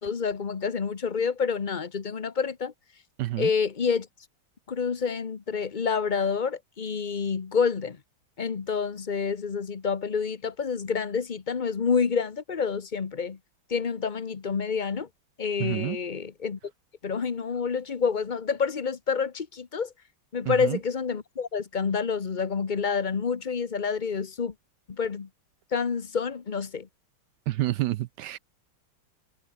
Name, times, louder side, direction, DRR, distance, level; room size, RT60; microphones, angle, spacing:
voice 1, 0.0-2.7 3.4-4.1 4.7-8.0 8.4-13.4 13.7-15.1 15.4-16.6 17.0-19.9 20.3-24.5 24.9-25.3 25.7-26.9, left 5 dB, 40° left, 0.6 m, -28 dB
voice 2, 3.2-3.5 15.6-16.0 20.5-20.8 27.5-28.4, right 15 dB, 80° right, 0.9 m, -28 dB
omnidirectional pair, 2.4 m